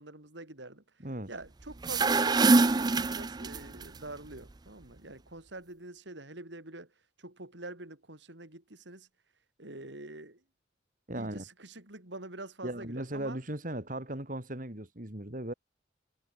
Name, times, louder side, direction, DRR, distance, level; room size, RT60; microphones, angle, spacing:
voice 1, 0.0-9.1 9.6-10.4 11.1-13.4, right 2 dB, 75° right, 4.0 m, -46 dB
sound 1, 1.7-3.8, right 3 dB, 20° right, 0.5 m, -24 dB
voice 2, 11.1-11.4 12.6-15.5, right 1 dB, 45° right, 2.9 m, -37 dB
head